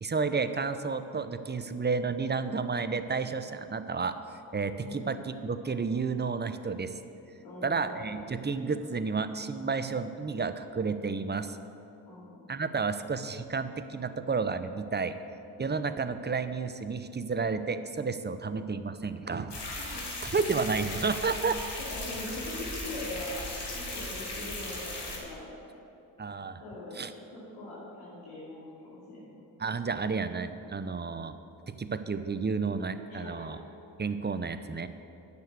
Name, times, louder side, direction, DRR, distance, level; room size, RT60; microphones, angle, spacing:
voice 1, 0.0-4.2 4.5-6.9 7.6-11.6 12.5-15.1 15.6-19.5 20.2-21.6 26.2-26.6 26.9-27.1 29.6-31.4 31.7-33.6 34.0-34.9, right 4 dB, 20° right, 11 dB, 0.7 m, -31 dB
voice 2, 7.4-8.2 12.0-12.5 19.9-20.0 21.9-25.5 26.6-27.0 27.5-29.4 33.1-33.5, left 1 dB, 80° left, -8 dB, 2.6 m, -42 dB
sound 1, 19.5-25.2, left 2 dB, 55° left, 2.7 m, -37 dB
9.5 x 6.7 x 8.1 m, 2.8 s
hypercardioid pair, 45°, 49 cm